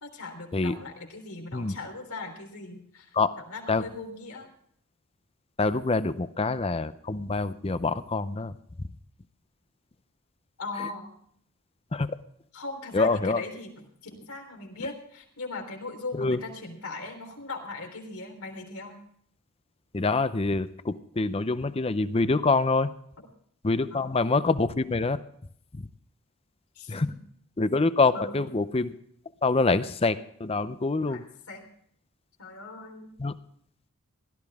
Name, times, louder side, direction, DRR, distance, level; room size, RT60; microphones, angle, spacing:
voice 1, 0.0-3.1 3.5-4.5 10.6-11.1 12.5-19.0 23.9-24.2 26.8-27.2 28.1-28.5 31.0-31.7 32.4-33.2, left 3 dB, 85° left, 2 dB, 3.6 m, -39 dB
voice 2, 5.6-8.5 10.8-10.9 11.9-12.2 12.9-13.4 16.2-16.4 19.9-22.9 23.6-25.2 25.7-25.9 26.9-27.1 27.6-28.9 29.4-31.2 33.2-33.3, left 3 dB, 25° left, 13 dB, 0.6 m, -25 dB
16.5 x 13.0 x 3.5 m, 0.66 s
head